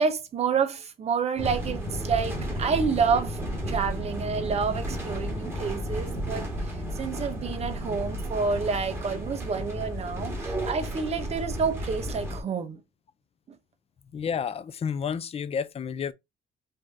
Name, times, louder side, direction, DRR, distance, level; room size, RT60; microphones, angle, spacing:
voice 1, 0.0-3.4 3.7-12.8 13.5-13.6, right 5 dB, 40° right, 1.0 m, -29 dB
sound 1, 1.4-12.4, equal, 15° right, 1.9 m, -33 dB
voice 2, 14.1-16.1, left 7 dB, 35° left, 0.6 m, -30 dB
5.2 x 2.8 x 3.6 m
cardioid pair, 110°, 17 cm